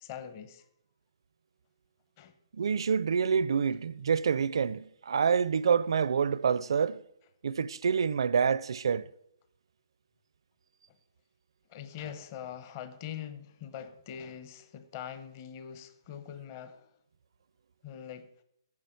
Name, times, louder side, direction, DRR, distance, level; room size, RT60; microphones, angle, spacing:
voice 1, 0.0-0.6 2.2-2.3 11.7-16.9 17.8-18.3, left 9 dB, 30° left, 0.9 m, -43 dB
voice 2, 2.5-7.0 7.4-9.0, right 6 dB, 70° right, 0.5 m, -27 dB
9.6 x 7.4 x 7.8 m
hypercardioid pair, 160°, 3 cm